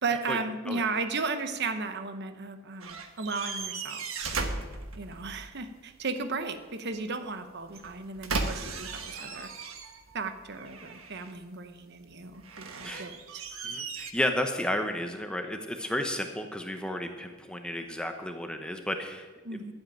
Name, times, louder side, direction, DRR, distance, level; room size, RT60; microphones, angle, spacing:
voice 1, 0.0-4.4 5.0-9.5 10.1-13.4 19.4-19.7, right 4 dB, 55° right, 8 dB, 1.0 m, -35 dB
sound 1, 2.8-5.5 7.7-10.2 10.5-11.4 12.4-14.1, right 4 dB, 75° right, 1.3 m, -36 dB
voice 2, 13.6-19.7, left 1 dB, 5° left, 5 dB, 0.9 m, -32 dB
12.0 x 7.8 x 9.2 m, 1.3 s
head